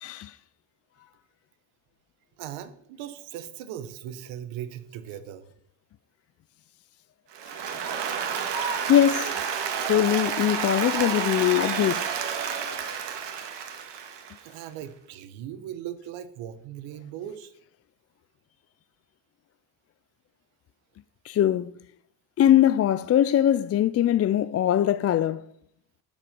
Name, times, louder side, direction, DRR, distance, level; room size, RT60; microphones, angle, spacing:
voice 1, 0.0-0.4 7.6-7.8 8.9-9.4 9.9-12.1 21.2-21.7 22.4-25.4, left 11 dB, 35° left, 0.4 m, -22 dB
voice 2, 2.4-5.4 14.4-17.5, right 10 dB, 75° right, 1.3 m, -38 dB
Applause, 7.3-14.5, right 7 dB, 60° right, 2.1 m, -30 dB
12.0 x 7.3 x 5.2 m
supercardioid pair, 70°, 47 cm